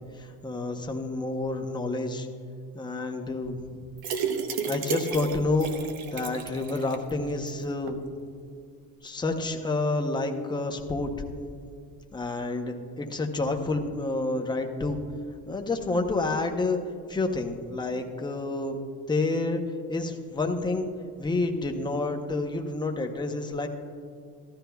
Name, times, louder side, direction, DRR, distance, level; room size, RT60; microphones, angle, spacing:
voice 1, 0.2-2.3 2.7-3.6 4.7-5.7 6.1-8.0 9.0-11.1 12.1-15.0 15.5-16.8 17.1-18.8 19.1-19.6 19.9-20.9 21.2-23.7, left 2 dB, 10° left, 3 dB, 0.7 m, -29 dB
sound 1, 4.0-7.1 7.5-7.6 7.9-8.0, right 5 dB, 80° right, 1.0 m, -32 dB
14.5 x 13.0 x 2.3 m, 2.3 s
cardioid pair, 155°, 36 cm